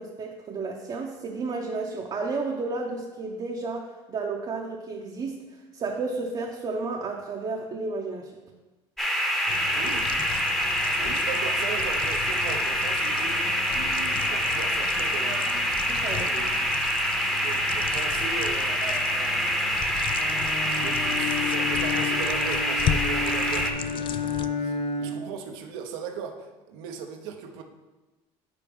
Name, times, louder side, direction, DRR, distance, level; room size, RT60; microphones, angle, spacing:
voice 1, 0.0-5.4 5.7-8.3 15.9-16.3 25.0-25.2, right 3 dB, 40° right, 0 dB, 0.7 m, -32 dB
sound 1, 9.0-23.7, equal, ahead, 0.9 m, -26 dB
sound 2, 9.5-24.5, left 9 dB, 45° left, 0.4 m, -36 dB
voice 2, 9.7-10.1 10.9-16.5 17.3-19.8 20.7-27.6, right 7 dB, 85° right, 4 dB, 0.7 m, -38 dB
Bowed string instrument, 20.1-25.4, left 5 dB, 60° left, 0.9 m, -31 dB
5.1 x 4.5 x 5.1 m, 1.2 s
supercardioid pair, 90°, 12 cm